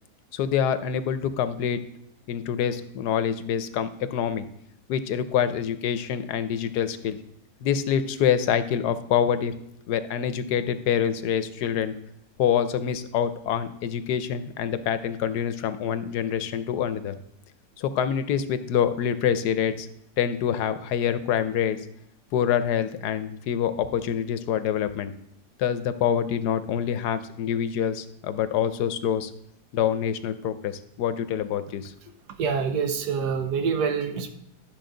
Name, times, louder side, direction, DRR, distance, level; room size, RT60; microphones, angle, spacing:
voice 1, 0.3-1.8 2.3-4.5 4.9-7.2 7.6-9.5 9.9-11.9 12.4-17.2 17.8-19.9 20.2-21.8 22.3-25.1 25.6-29.3 29.7-31.9, left 8 dB, 80° left, 11 dB, 1.2 m, -26 dB
voice 2, 32.4-34.3, right 6 dB, 80° right, 8 dB, 1.4 m, -26 dB
12.0 x 6.4 x 3.8 m, 0.76 s
omnidirectional pair, 1.8 m